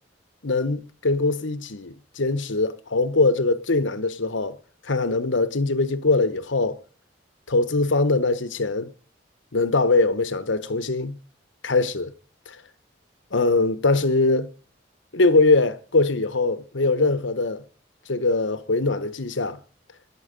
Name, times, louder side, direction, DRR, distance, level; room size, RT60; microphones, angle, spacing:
voice 1, 0.4-4.6 4.8-6.8 7.5-8.9 9.5-11.2 11.6-12.1 12.5-12.6 13.3-14.5 15.1-17.6 18.1-19.6, left 3 dB, 85° left, 1.2 m, -22 dB
21.5 x 7.8 x 5.3 m
head